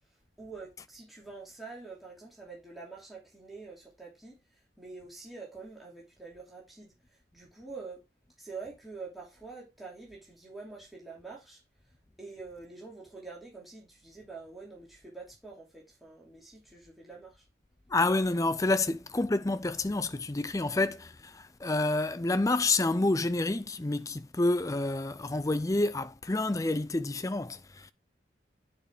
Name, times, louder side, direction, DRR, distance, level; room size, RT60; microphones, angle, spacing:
voice 1, 0.4-4.4 4.8-6.9 7.3-8.0 8.4-11.6 12.2-17.4, right 4 dB, ahead, 2.9 m, -46 dB
voice 2, 17.9-27.9, left 2 dB, 20° left, 0.5 m, -28 dB
9.2 x 5.0 x 3.6 m
head